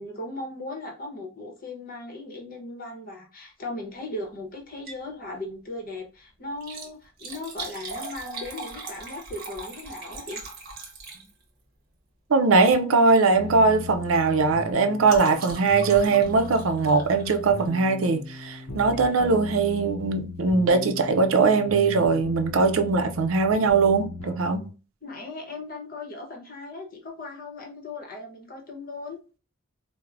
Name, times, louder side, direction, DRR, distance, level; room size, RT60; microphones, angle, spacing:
voice 1, 0.0-10.4 25.0-29.2, left 2 dB, 40° left, 0.8 m, -37 dB
Liquid, 4.7-5.1 5.5-5.6 6.5-11.6 12.6-12.9 13.2-13.5 13.8-17.8 18.8-19.0 19.6-19.7 19.9-20.0, right 3 dB, 45° right, 0.9 m, -40 dB
voice 2, 12.3-24.7, right 4 dB, 75° right, 0.5 m, -21 dB
sound 1, 13.3-24.7, left 2 dB, 70° left, 0.6 m, -38 dB
4.4 x 2.0 x 2.4 m
head